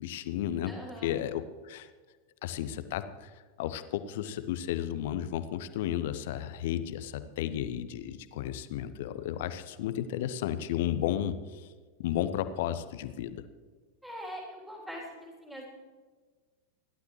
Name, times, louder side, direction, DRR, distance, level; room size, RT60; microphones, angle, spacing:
voice 1, 0.0-0.7 1.0-1.9 2.4-3.3 3.6-11.7 12.0-13.4, left 11 dB, 55° left, 12 dB, 0.9 m, -33 dB
voice 2, 0.6-1.2 14.0-15.7, equal, 5° right, -2 dB, 3.5 m, -42 dB
29.0 x 12.0 x 3.2 m, 1.5 s
figure-of-eight pair, 90°, 0 cm